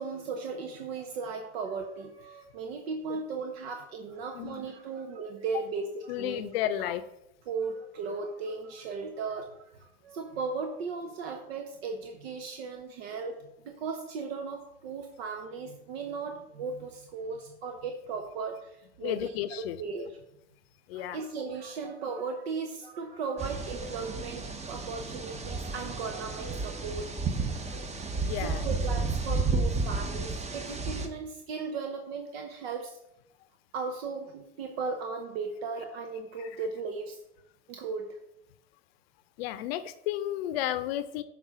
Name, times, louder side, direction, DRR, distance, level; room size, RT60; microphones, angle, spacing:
voice 1, 0.0-6.4 6.8-6.9 7.5-13.4 13.6-20.2 20.9-33.0 33.7-37.2 37.7-38.1, right 4 dB, 80° right, 4 dB, 0.8 m, -37 dB
voice 2, 6.1-7.0 19.0-19.8 20.9-21.2 28.2-28.7 36.4-36.5 39.4-41.2, left 12 dB, 75° left, 13 dB, 0.6 m, -32 dB
sound 1, 23.4-31.1, right 3 dB, 20° right, 0.9 m, -32 dB
6.0 x 3.7 x 5.6 m, 0.81 s
hypercardioid pair, 80°, 31 cm